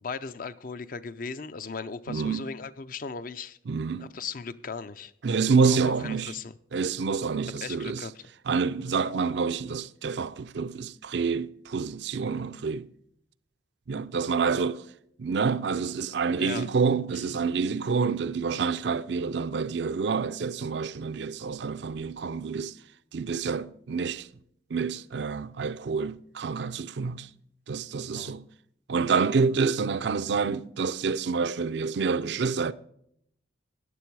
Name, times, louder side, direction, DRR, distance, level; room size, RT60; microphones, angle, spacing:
voice 1, 0.0-3.6 4.0-5.1 5.6-6.5 7.6-8.2 16.4-16.7 28.1-28.3, left 5 dB, 45° left, 0.5 m, -37 dB
voice 2, 2.1-2.4 3.7-4.1 5.2-6.3 6.7-8.0 8.5-12.9 13.9-14.8 15.2-22.8 23.1-24.3 24.7-27.3 27.7-28.5 28.9-32.7, right 5 dB, 65° right, 0.5 m, -28 dB
14.0 x 9.8 x 4.6 m
head